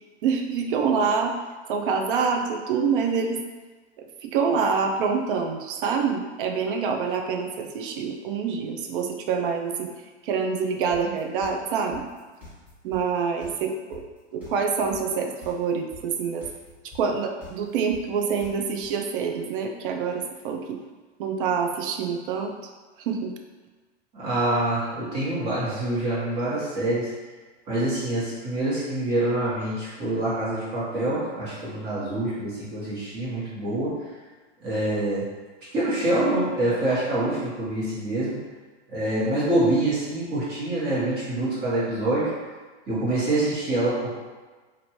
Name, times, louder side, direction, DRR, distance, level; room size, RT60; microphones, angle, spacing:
voice 1, 0.2-1.4 1.7-3.4 4.0-9.9 10.2-12.1 12.8-14.0 14.3-16.5 16.9-20.8 21.2-22.5 23.0-23.3, right 5 dB, 50° right, 4 dB, 0.4 m, -26 dB
sound 1, 10.9-18.9, left 2 dB, 5° right, 1.1 m, -45 dB
voice 2, 24.1-27.1 27.7-33.9 34.6-35.3 35.7-38.4 38.9-42.3 42.9-44.2, right 1 dB, 25° right, -8 dB, 1.1 m, -26 dB
3.0 x 2.5 x 2.9 m, 1.3 s
hypercardioid pair, 130°, 36 cm